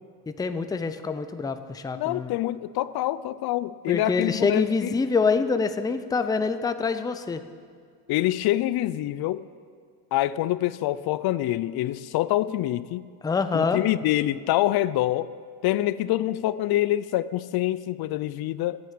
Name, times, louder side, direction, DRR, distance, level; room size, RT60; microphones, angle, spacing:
voice 1, 0.3-2.4 3.9-7.5 13.2-13.8, left 4 dB, 10° left, 9 dB, 0.4 m, -26 dB
voice 2, 1.9-4.9 8.1-9.5 10.1-13.0 13.5-15.3 15.6-18.8, left 14 dB, 70° left, 16 dB, 0.5 m, -26 dB
10.5 x 8.5 x 9.1 m, 2.1 s
cardioid pair, 130°, 39 cm